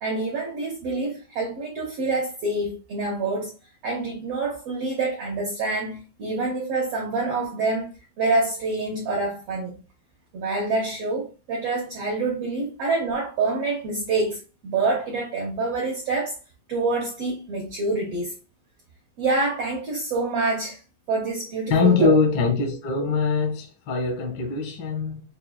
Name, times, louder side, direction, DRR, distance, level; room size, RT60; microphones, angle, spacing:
voice 1, 0.0-3.5 3.8-7.9 8.2-9.7 10.3-16.4 16.7-18.3 19.2-20.8 21.1-22.1, right 3 dB, 85° right, 1.3 m, -26 dB
voice 2, 21.7-25.2, left 4 dB, 70° left, 1.1 m, -22 dB
6.5 x 2.3 x 2.2 m
omnidirectional pair, 3.9 m